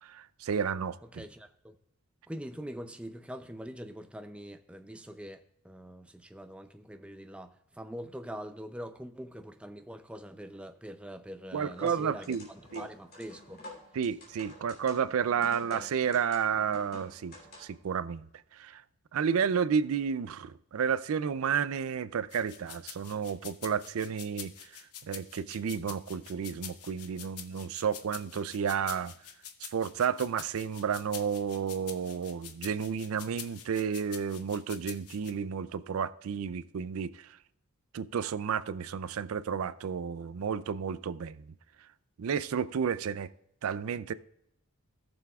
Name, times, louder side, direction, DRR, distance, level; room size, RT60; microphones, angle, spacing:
voice 1, 0.0-1.2 11.5-12.5 12.7-12.8 13.9-18.3 18.5-18.8 19.1-24.7 25.1-29.1 29.6-37.4 37.9-41.4 42.2-43.3 43.6-44.1, right 7 dB, 75° right, 0.4 m, -31 dB
voice 2, 1.1-1.8 2.3-13.6, equal, 5° right, 0.4 m, -43 dB
sound 1, 11.5-17.8, left 1 dB, 45° left, 2.9 m, -49 dB
sound 2, 22.3-35.3, left 9 dB, 85° left, 0.8 m, -46 dB
17.5 x 6.9 x 2.3 m
head